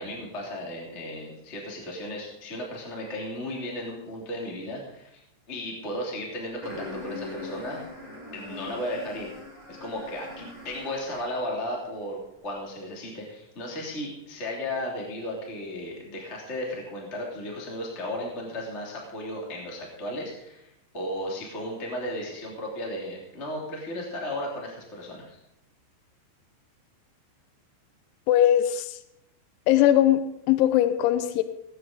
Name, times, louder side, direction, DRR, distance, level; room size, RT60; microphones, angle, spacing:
voice 1, 0.0-5.2 5.5-7.8 8.3-9.3 9.7-25.4, left 1 dB, 20° left, -2 dB, 1.9 m, -35 dB
sound 1, 6.6-11.5, left 2 dB, 5° right, 6.6 m, -41 dB
voice 2, 28.3-29.0 29.7-31.4, left 12 dB, 80° left, 10 dB, 3.0 m, -20 dB
18.0 x 8.8 x 5.1 m, 0.83 s
omnidirectional pair, 5.9 m